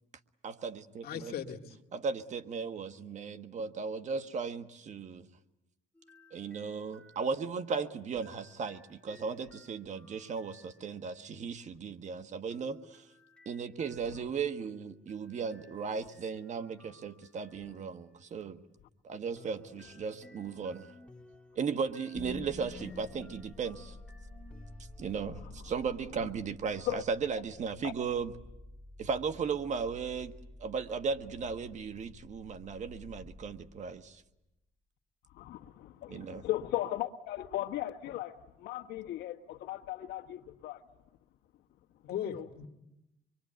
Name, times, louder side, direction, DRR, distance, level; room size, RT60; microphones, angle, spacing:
voice 1, 0.4-1.3 1.9-5.3 6.3-13.1 13.4-18.6 19.0-20.9 21.5-24.0 25.0-28.3 29.0-30.3 30.6-34.2 36.1-36.4, right 5 dB, 45° right, 1.4 m, -36 dB
voice 2, 1.0-1.8 42.0-42.7, left 8 dB, 65° left, 2.1 m, -38 dB
sound 1, 5.9-11.2 12.5-18.3 19.3-25.5, left 1 dB, 5° left, 3.4 m, -59 dB
sound 2, 22.1-34.3, left 3 dB, 25° left, 6.0 m, -50 dB
voice 3, 35.3-40.8 42.1-42.5, left 14 dB, 80° left, 1.5 m, -37 dB
25.5 x 23.5 x 9.2 m
cardioid pair, 110°, 17 cm